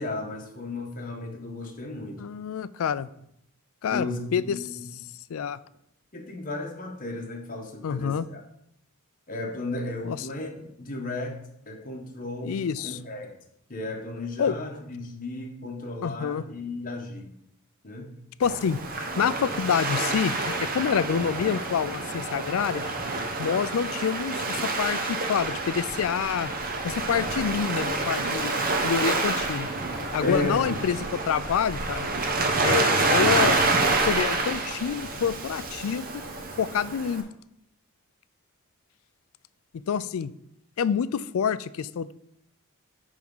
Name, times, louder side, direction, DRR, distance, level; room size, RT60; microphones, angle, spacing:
voice 1, 0.0-2.3 3.9-4.9 6.1-8.4 9.3-11.4 11.7-12.5 12.8-13.3 13.7-17.3 17.8-18.1 30.2-30.8, left 2 dB, 40° left, 1 dB, 1.3 m, -34 dB
voice 2, 2.2-3.1 3.8-4.1 4.3-5.0 5.3-5.6 7.8-8.3 10.0-10.3 12.4-13.0 14.4-14.6 16.0-16.4 18.4-18.8 19.2-22.8 23.4-26.5 26.8-28.5 28.8-29.7 30.1-32.1 32.6-33.6 34.0-36.2 36.6-37.2 39.9-40.3 40.8-42.2, left 7 dB, 65° left, 17 dB, 0.3 m, -27 dB
Waves surf, 18.4-37.2, right 3 dB, 40° right, 0.9 m, -28 dB
9.3 x 3.6 x 5.5 m, 0.76 s
head